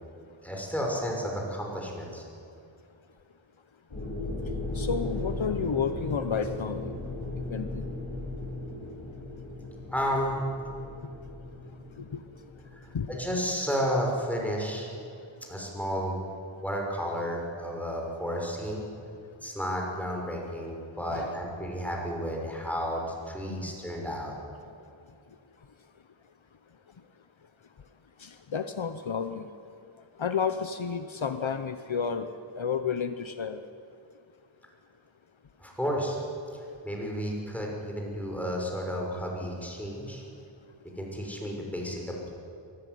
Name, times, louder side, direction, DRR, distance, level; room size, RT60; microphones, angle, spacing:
voice 1, 0.4-2.2 9.9-10.4 12.7-12.8 13.1-14.9 15.5-16.2 16.6-18.8 19.4-24.3 35.6-36.2 36.8-40.2 41.0-42.3, equal, 5° left, -1 dB, 6.1 m, -32 dB
sound 1, 3.9-13.7, left 2 dB, 80° left, 5.9 m, -37 dB
voice 2, 4.7-6.8 7.5-7.9 12.1-12.2 12.9-13.1 21.1-21.3 28.2-29.5 30.2-32.3 32.6-33.6, left 6 dB, 65° left, 10 dB, 1.0 m, -31 dB
23.5 x 14.5 x 9.4 m, 2.5 s
wide cardioid pair, 45°, 50 cm